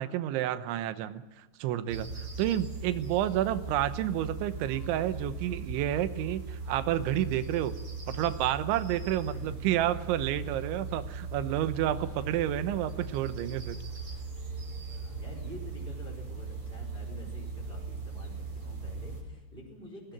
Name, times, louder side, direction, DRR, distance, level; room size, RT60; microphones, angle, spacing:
voice 1, 0.0-7.8 8.1-13.8, right 12 dB, 90° right, 12 dB, 3.4 m, -30 dB
sound 1, 1.9-19.2, right 4 dB, 30° right, 4.6 m, -39 dB
voice 2, 11.9-12.3 14.8-20.1, equal, 10° right, 1 dB, 3.8 m, -47 dB
20.0 x 19.0 x 9.3 m, 1.1 s
omnidirectional pair, 5.2 m